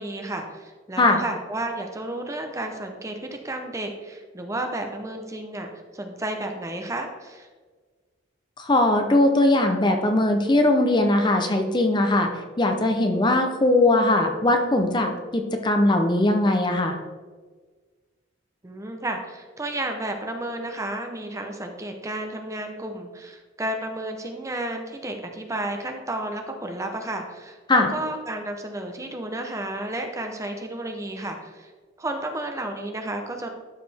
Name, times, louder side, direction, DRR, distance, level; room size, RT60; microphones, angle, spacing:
voice 1, 0.0-7.5 18.6-31.7 32.0-33.5, right 1 dB, 15° right, 4 dB, 0.7 m, -32 dB
voice 2, 8.6-12.3 12.6-17.0 27.7-27.9, left 2 dB, 25° left, 5 dB, 0.6 m, -20 dB
12.0 x 5.0 x 3.4 m, 1.4 s
head